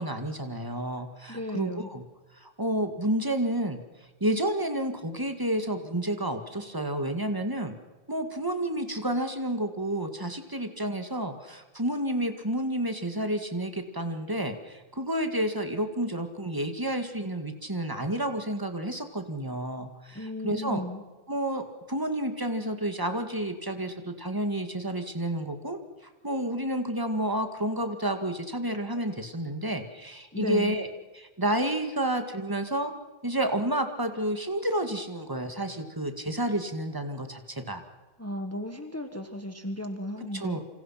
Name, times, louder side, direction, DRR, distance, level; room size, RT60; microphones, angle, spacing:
voice 1, 0.0-2.0 2.3-3.8 4.2-7.8 8.1-20.8 21.3-30.9 31.1-32.9 33.2-37.8 40.3-40.6, right 1 dB, 20° right, 6 dB, 2.2 m, -30 dB
voice 2, 1.3-1.9 20.1-21.0 30.3-30.8 38.2-40.6, left 1 dB, 15° left, 6 dB, 1.5 m, -35 dB
28.5 x 26.5 x 5.9 m, 1.2 s
omnidirectional pair, 1.1 m